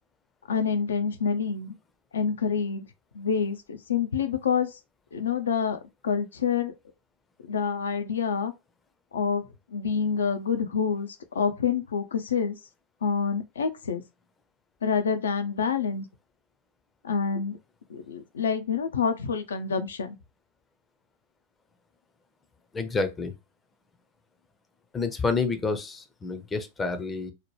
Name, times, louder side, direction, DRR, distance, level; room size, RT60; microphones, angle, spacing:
voice 1, 0.5-1.7 2.1-2.8 3.1-4.7 5.1-6.7 7.4-8.5 9.1-9.4 9.7-11.1 11.3-12.6 13.0-14.0 14.8-16.1 17.0-17.6 17.9-20.2, left 6 dB, 65° left, 0.4 m, -27 dB
voice 2, 22.7-23.3 24.9-27.3, left 4 dB, 15° left, 0.5 m, -29 dB
2.8 x 2.1 x 3.0 m
figure-of-eight pair, 90°, 0 cm